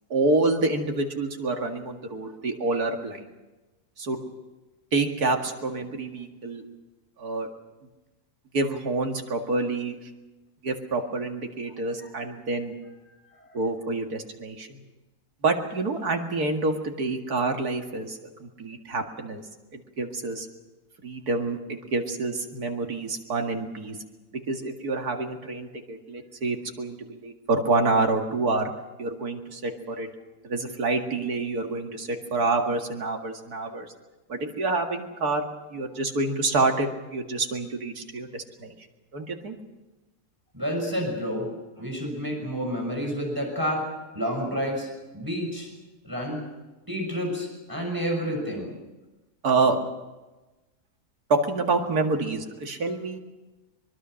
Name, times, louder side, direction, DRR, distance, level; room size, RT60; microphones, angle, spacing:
voice 1, 0.1-3.3 4.0-4.2 4.9-6.6 7.2-7.5 8.5-10.0 10.6-12.7 13.5-14.8 15.4-19.4 19.7-20.5 21.0-24.0 24.5-28.7 29.0-30.1 30.4-33.9 34.3-35.4 35.7-38.7 39.1-39.6 49.4-49.8 51.3-53.2, right 3 dB, 70° right, 3 dB, 2.5 m, -27 dB
voice 2, 13.1-13.6 40.5-41.5 41.8-43.9 44.1-44.9 45.1-45.7 46.0-46.4 46.9-48.7, equal, 10° right, 0 dB, 6.1 m, -29 dB
24.0 x 22.5 x 6.4 m, 1.1 s
omnidirectional pair, 1.7 m